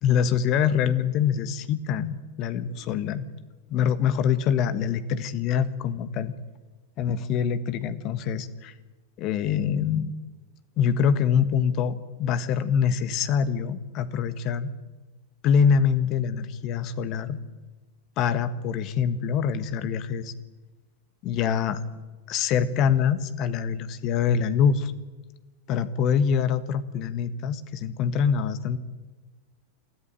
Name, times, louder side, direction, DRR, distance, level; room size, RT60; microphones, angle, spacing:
voice 1, 0.0-3.3 3.7-6.3 7.0-8.7 9.2-10.1 10.8-14.7 15.4-17.4 18.2-20.3 21.2-21.8 22.3-24.9 25.7-28.8, left 7 dB, 40° left, 14 dB, 1.5 m, -24 dB
29.0 x 14.0 x 9.4 m, 1.3 s
figure-of-eight pair, 90°, 0 cm